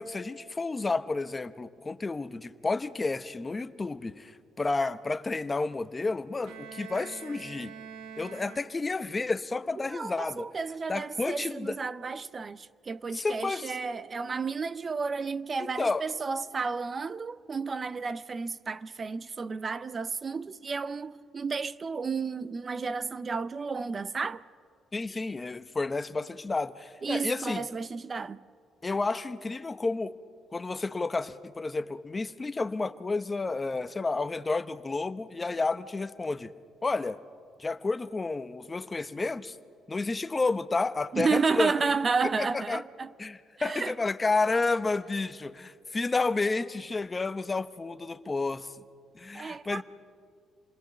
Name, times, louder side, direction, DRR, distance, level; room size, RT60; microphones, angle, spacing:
voice 1, 0.0-7.7 8.2-10.5 10.9-11.8 13.1-13.8 15.6-16.0 24.9-27.7 28.8-30.2 30.5-36.5 36.8-37.2 37.6-39.6 39.9-41.9 42.4-42.8 43.2-48.7 49.1-49.8, left 3 dB, 20° left, 0.8 m, -31 dB
Bowed string instrument, 6.4-9.2, right 7 dB, 90° right, 1.0 m, -45 dB
voice 2, 9.8-24.4 27.0-28.4 41.1-43.1 43.6-43.9 49.3-49.8, right 4 dB, 30° right, 0.5 m, -32 dB
28.0 x 20.0 x 7.9 m
cardioid pair, 115°, 0 cm